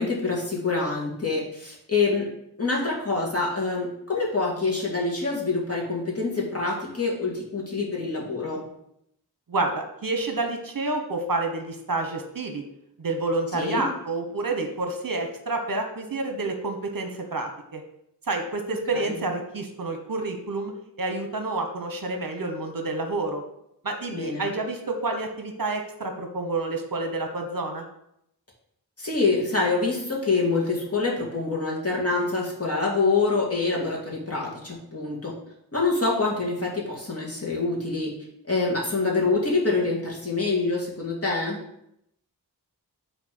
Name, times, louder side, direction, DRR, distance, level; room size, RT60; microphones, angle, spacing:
voice 1, 0.0-2.3 2.6-8.6 13.5-13.8 18.9-19.1 24.1-24.4 29.0-35.3 35.7-38.1 38.5-41.6, left 3 dB, 35° left, -4 dB, 2.5 m, -26 dB
voice 2, 9.5-12.6 13.0-17.8 18.3-20.7 21.0-23.4 23.8-27.8, right 2 dB, 55° right, 4 dB, 1.1 m, -29 dB
5.8 x 4.0 x 6.0 m, 0.77 s
wide cardioid pair, 60°, 41 cm